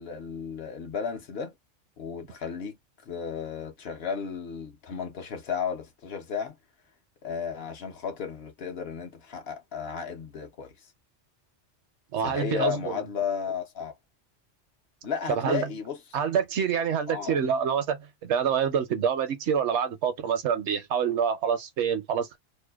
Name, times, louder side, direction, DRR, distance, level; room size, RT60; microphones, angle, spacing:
voice 1, 0.0-1.5 2.0-2.8 3.0-6.6 7.2-10.9 12.2-13.9 15.0-16.0 17.1-17.4, left 7 dB, 60° left, 0.9 m, -34 dB
voice 2, 12.1-12.9 15.3-15.7 16.1-22.4, right 7 dB, 70° right, 0.9 m, -26 dB
2.7 x 2.1 x 2.2 m
omnidirectional pair, 1.2 m